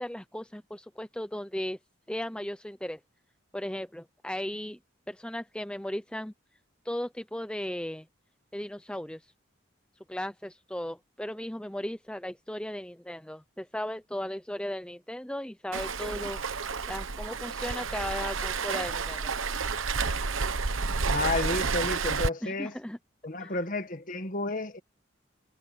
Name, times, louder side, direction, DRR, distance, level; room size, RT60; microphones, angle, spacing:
voice 1, 0.0-1.8 2.1-3.0 3.5-4.8 5.1-6.3 6.8-8.1 8.5-9.2 10.1-16.4 16.9-19.3 22.4-23.0 23.4-23.5, left 1 dB, 5° left, 0.6 m, -36 dB
Waves surf, 15.7-22.3, right 4 dB, 85° right, 1.1 m, -30 dB
voice 2, 21.0-22.7 23.2-24.8, left 2 dB, 45° left, 1.7 m, -31 dB
head